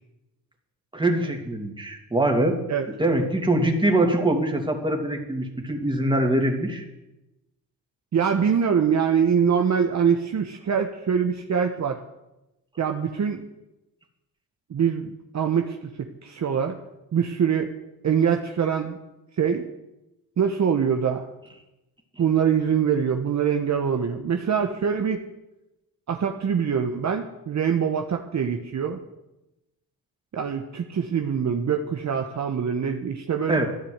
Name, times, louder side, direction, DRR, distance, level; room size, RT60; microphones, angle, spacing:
voice 1, 0.9-2.6 3.0-6.8 33.5-33.7, right 1 dB, 10° right, 2 dB, 2.7 m, -23 dB
voice 2, 8.1-12.0 12.8-13.4 14.7-16.8 17.1-17.7 18.0-19.0 19.4-19.6 20.4-21.3 22.2-25.2 26.1-29.0 30.3-33.6, right 7 dB, 45° right, 4 dB, 1.1 m, -24 dB
13.5 x 10.0 x 8.1 m, 0.96 s
cardioid pair, 95°, 38 cm